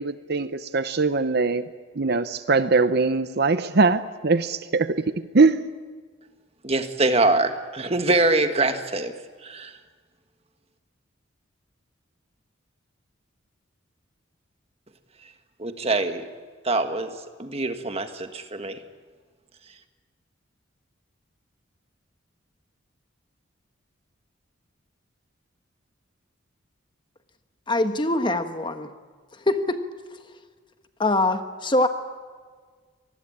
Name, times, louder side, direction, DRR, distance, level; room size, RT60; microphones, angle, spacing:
voice 1, 0.0-1.6 2.0-5.7, right 3 dB, 55° right, 12 dB, 0.8 m, -22 dB
voice 2, 6.6-9.1 9.4-9.7 15.6-16.2 16.6-17.1 17.4-18.8, right 2 dB, 30° right, 8 dB, 1.6 m, -24 dB
voice 3, 27.7-28.9 29.5-29.8 31.0-31.9, left 2 dB, 25° left, 8 dB, 1.3 m, -23 dB
25.5 x 20.0 x 8.7 m, 1.6 s
head